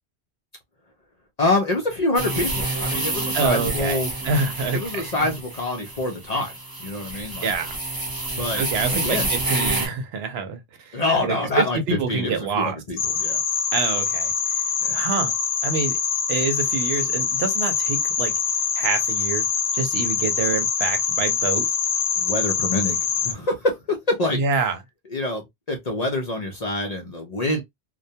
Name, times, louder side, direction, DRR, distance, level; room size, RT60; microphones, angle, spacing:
voice 1, 1.4-4.1 4.7-6.5 6.8-7.5 8.4-8.6 8.9-9.3 10.9-11.8 12.1-13.4 14.8-15.0 22.2-24.4 25.1-27.6, left 2 dB, 50° left, 0.5 m, -26 dB
sound 1, 2.2-9.9, right 2 dB, 25° right, 0.7 m, -28 dB
voice 2, 3.3-5.3 7.4-7.7 8.6-12.8 13.7-14.3 14.9-15.3 15.6-16.0 16.3-18.3 18.8-19.5 19.7-21.7 24.3-24.8, right 5 dB, 70° right, 0.8 m, -26 dB
sound 2, 13.0-23.3, left 6 dB, 80° left, 0.8 m, -24 dB
2.2 x 2.2 x 2.6 m
omnidirectional pair, 1.1 m